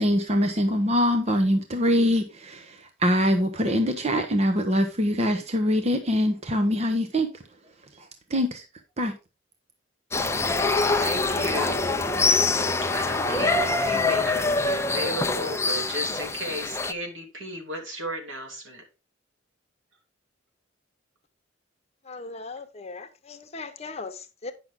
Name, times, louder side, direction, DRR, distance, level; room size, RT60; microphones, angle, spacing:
voice 1, 0.0-7.3 8.3-8.6 9.0-9.1, equal, 35° right, 0.8 m, -23 dB
sound 1, 10.1-16.9, left 3 dB, 15° left, 0.6 m, -24 dB
voice 2, 10.9-12.0 12.8-18.8, equal, 80° right, 2.9 m, -34 dB
voice 3, 22.0-24.5, left 3 dB, 35° left, 1.0 m, -38 dB
9.5 x 6.0 x 3.6 m
head